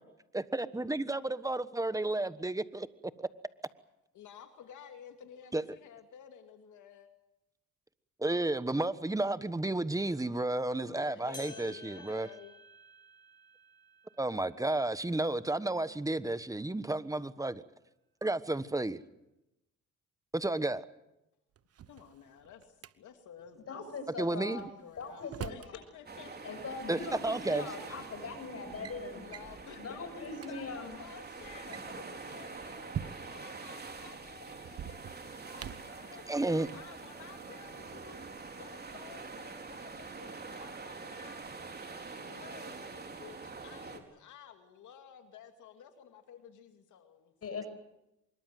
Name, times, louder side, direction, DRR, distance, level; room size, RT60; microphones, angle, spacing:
voice 1, 0.3-2.9 3.2-3.3 5.5-5.6 8.2-12.3 14.2-17.6 18.2-19.0 20.3-20.8 24.2-24.7 26.9-27.6 36.3-36.7, right 2 dB, 10° right, 1.3 m, -32 dB
voice 2, 4.1-7.1 10.8-12.6 21.9-23.8 24.2-27.0 29.1-41.6 42.1-47.3, left 8 dB, 75° left, 2.5 m, -53 dB
sound 1, 11.3-16.0 16.5-16.6 17.4-17.5 18.4-18.5, left 1 dB, 15° left, 6.3 m, -54 dB
Drawer open or close, 21.6-22.9 24.6-25.8 27.0-27.1 28.0-28.2 28.5-29.0 29.3-29.6 30.1-30.2 30.3-30.5 31.5-33.5 34.6-36.0, right 9 dB, 55° right, 1.1 m, -44 dB
voice 3, 23.7-24.7 25.0-25.8 26.4-29.3 29.7-31.0 47.4-47.8, left 4 dB, 50° left, 6.8 m, -41 dB
sound 2, 26.1-44.0, right 4 dB, 30° right, 4.0 m, -45 dB
25.0 x 22.0 x 7.8 m
cardioid pair, 90°, 30 cm